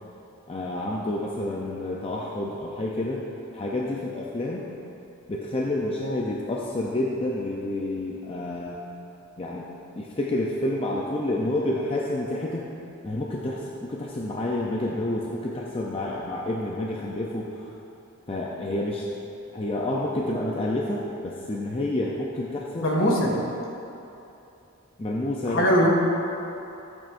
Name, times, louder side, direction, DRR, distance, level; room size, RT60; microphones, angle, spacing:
voice 1, 0.5-3.3 3.5-4.6 5.3-8.8 9.4-9.7 10.0-12.6 13.0-17.7 18.3-19.1 19.5-22.9 25.0-25.6, left 1 dB, 25° left, -3 dB, 0.6 m, -29 dB
voice 2, 22.8-23.3 25.5-25.9, equal, 60° left, -3 dB, 2.0 m, -21 dB
14.0 x 9.0 x 2.6 m, 2.8 s
head